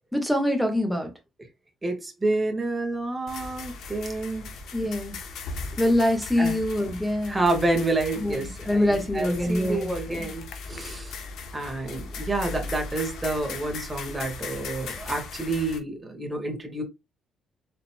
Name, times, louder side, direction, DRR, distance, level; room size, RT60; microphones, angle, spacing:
voice 1, 0.1-1.1 4.7-5.2 5.8-7.5 8.2-10.3, left 1 dB, 5° left, 1.4 m, -25 dB
voice 2, 1.8-4.5 6.4-6.6 7.3-11.2 11.5-16.8, right 2 dB, 20° right, 1.6 m, -29 dB
sound 1, 3.3-15.8, left 3 dB, 75° left, 0.9 m, -38 dB
4.5 x 3.8 x 2.2 m
cardioid pair, 90°, 0 cm